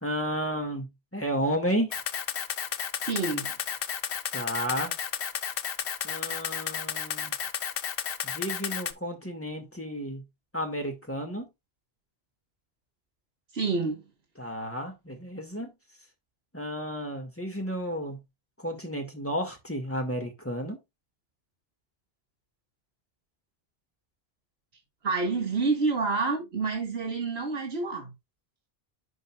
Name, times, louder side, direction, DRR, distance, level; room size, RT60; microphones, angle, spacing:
voice 1, 0.0-2.0 4.3-5.0 6.0-7.3 8.2-10.2 10.5-11.5 14.4-15.7 16.5-18.2 18.6-20.8, equal, 15° left, 1.9 m, -32 dB
Camera, 1.9-8.9, left 8 dB, 65° left, 0.9 m, -32 dB
voice 2, 3.0-3.6 13.5-14.0 25.0-28.1, right 4 dB, 90° right, 2.1 m, -28 dB
11.0 x 5.3 x 2.3 m
omnidirectional pair, 1.0 m